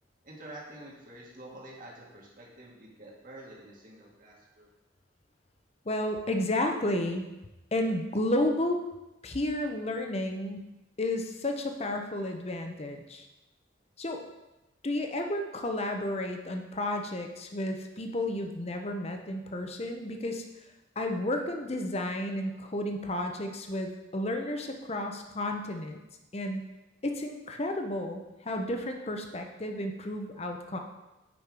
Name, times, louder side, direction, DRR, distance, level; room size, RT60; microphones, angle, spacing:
voice 1, 0.2-4.7, right 1 dB, 45° right, -4 dB, 1.9 m, -48 dB
voice 2, 5.8-7.3 7.7-8.8 9.2-10.7 11.0-13.3 14.0-14.2 14.8-20.4 21.0-26.0 26.3-26.6 27.0-30.8, left 1 dB, 30° left, 4 dB, 0.8 m, -32 dB
8.5 x 5.6 x 4.8 m, 1.0 s
head